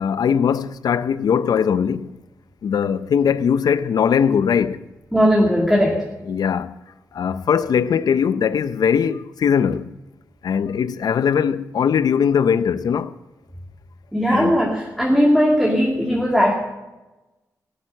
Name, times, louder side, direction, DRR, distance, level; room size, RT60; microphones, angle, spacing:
voice 1, 0.0-2.1 2.6-4.8 6.3-6.7 7.1-9.9 10.4-13.1 14.3-14.5, left 7 dB, 80° left, 0.6 m, -20 dB
voice 2, 5.1-6.0 14.1-16.5, equal, ahead, 2.3 m, -18 dB
17.5 x 8.7 x 6.5 m
wide cardioid pair, 95°, 7 cm